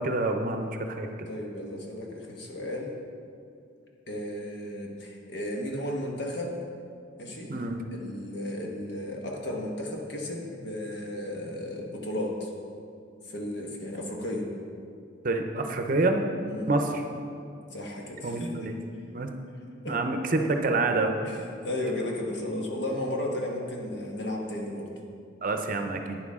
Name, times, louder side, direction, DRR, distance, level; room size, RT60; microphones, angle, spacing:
voice 1, 0.0-1.3 7.5-7.8 15.2-16.2 16.7-17.0 18.2-18.8 19.1-19.3 19.9-21.1 25.4-26.2, right 2 dB, 45° right, 4 dB, 0.7 m, -27 dB
voice 2, 1.3-3.0 4.1-6.6 7.2-7.6 7.9-12.5 13.3-14.5 16.5-16.7 17.7-18.5 19.8-20.0 21.2-24.9, left 1 dB, 60° left, -1 dB, 1.5 m, -34 dB
11.5 x 9.3 x 3.7 m, 2.5 s
head